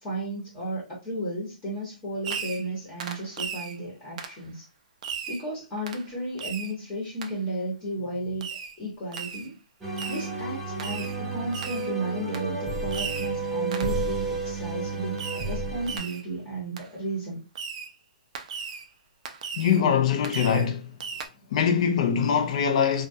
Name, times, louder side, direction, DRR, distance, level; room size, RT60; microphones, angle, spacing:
voice 1, 0.0-4.6 5.3-8.5 8.8-9.6 10.1-11.0 11.3-17.4, right 1 dB, 20° left, 0.9 m, -33 dB
Fireworks, 2.2-2.7 3.0-3.8 4.2-4.4 5.0-5.4 5.9-6.1 6.4-6.7 7.2-7.3 8.4-8.8 9.1-9.5 10.0-10.3 10.8-11.2 11.5-11.9 12.3-12.5 12.9-13.3 13.7-14.0 15.2-15.6 15.9-16.3 16.8-16.9 17.5-17.9 18.3-18.9 19.2-19.8 20.2-20.7 21.0-21.3, right 6 dB, 55° right, 0.4 m, -36 dB
sound 1, 9.8-16.0, right 3 dB, 10° right, 0.6 m, -31 dB
voice 2, 19.6-20.9 21.5-23.1, left 7 dB, 50° left, 0.4 m, -23 dB
2.2 x 2.1 x 2.6 m
hypercardioid pair, 145°, 5 cm